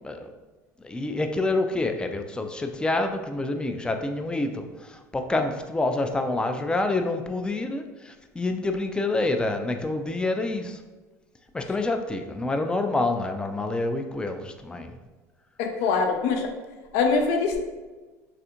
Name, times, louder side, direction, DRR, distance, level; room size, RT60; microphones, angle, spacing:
voice 1, 0.0-0.3 0.8-10.8 11.5-15.0, left 2 dB, 10° left, 5 dB, 0.3 m, -27 dB
voice 2, 15.6-16.5 16.9-17.6, left 4 dB, 70° left, 3 dB, 0.5 m, -23 dB
3.3 x 2.4 x 2.8 m, 1.3 s
hypercardioid pair, 85°, 9 cm